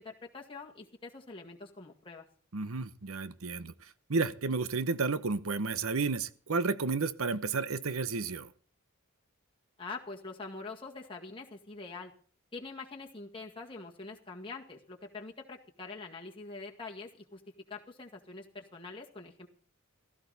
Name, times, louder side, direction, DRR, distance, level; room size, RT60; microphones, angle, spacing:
voice 1, 0.0-2.2 9.8-12.1 12.5-17.4 17.7-19.5, left 3 dB, 25° left, -1 dB, 1.9 m, -44 dB
voice 2, 2.5-8.5, right 4 dB, 70° right, 14 dB, 0.9 m, -32 dB
16.5 x 14.0 x 4.1 m, 0.43 s
head